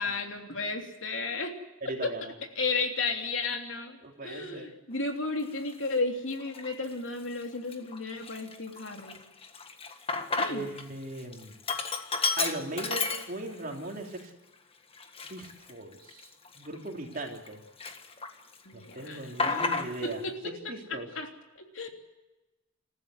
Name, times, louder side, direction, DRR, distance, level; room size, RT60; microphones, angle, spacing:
voice 1, 0.0-1.5 2.0-2.1 2.5-9.2 10.4-10.7 18.6-19.6 20.0-20.5 20.9-21.3 21.7-21.9, left 3 dB, 65° left, 3 dB, 3.3 m, -33 dB
voice 2, 1.8-2.3 4.0-4.7 10.5-11.5 12.4-14.3 15.3-16.2 16.6-17.6 18.7-20.2 20.7-21.1, right 2 dB, 45° right, 2 dB, 3.5 m, -38 dB
Sink (filling or washing), 5.6-5.7 6.4-6.9 7.3-7.4 7.7-10.8 11.1-13.7 14.1-14.2 14.9-17.5 17.8-18.6 18.8-20.2, left 4 dB, 30° left, 1.6 m, -32 dB
28.0 x 14.5 x 7.9 m, 1.1 s
head